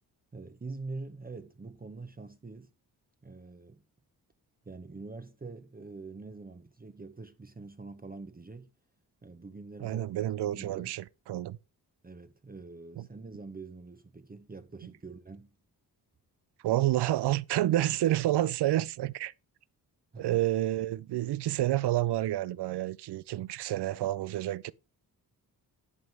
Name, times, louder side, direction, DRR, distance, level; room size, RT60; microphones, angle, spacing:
voice 1, 0.3-2.7 3.2-3.8 4.6-8.7 9.2-10.9 12.0-15.5 20.1-20.4, right 3 dB, 20° right, 0.8 m, -45 dB
voice 2, 9.8-11.6 13.0-13.1 16.6-19.3 20.2-24.7, right 14 dB, 85° right, 0.5 m, -29 dB
11.0 x 5.4 x 4.6 m
cardioid pair, 80°, 39 cm